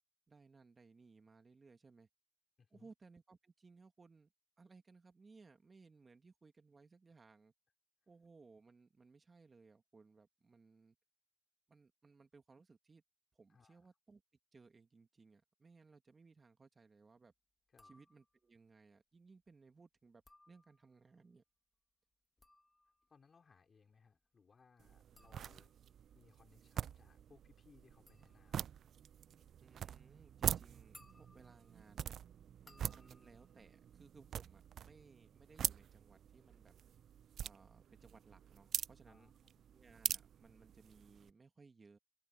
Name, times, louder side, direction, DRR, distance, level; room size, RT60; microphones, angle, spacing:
voice 1, 0.3-2.1 2.7-4.3 4.6-7.5 8.1-11.0 11.7-13.0 13.3-14.2 14.5-17.3 17.8-21.4 29.6-32.2 32.6-36.7 37.4-39.3 39.7-42.0, right 4 dB, 40° right, 2.1 m, -63 dB
voice 2, 2.6-2.9 13.5-13.9 17.7-17.9 23.1-25.7 26.1-28.7 39.1-39.6, left 5 dB, 55° left, 3.8 m, -67 dB
sound 1, 17.7-18.5 20.1-21.1 22.1-34.8 35.1-35.7, left 2 dB, 20° left, 1.6 m, -69 dB
sound 2, 24.8-41.3, right 9 dB, 80° right, 0.3 m, -44 dB
open air
cardioid pair, 70°, 0 cm